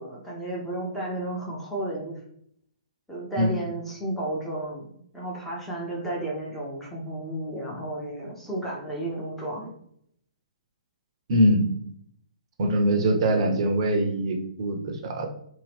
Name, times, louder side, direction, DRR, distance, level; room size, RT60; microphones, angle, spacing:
voice 1, 0.0-2.2 3.1-9.7, right 1 dB, 5° left, -5 dB, 0.7 m, -33 dB
voice 2, 11.3-11.7 12.6-15.3, right 1 dB, 45° right, 3 dB, 0.6 m, -23 dB
2.7 x 2.3 x 3.4 m, 0.67 s
figure-of-eight pair, 125°, 4 cm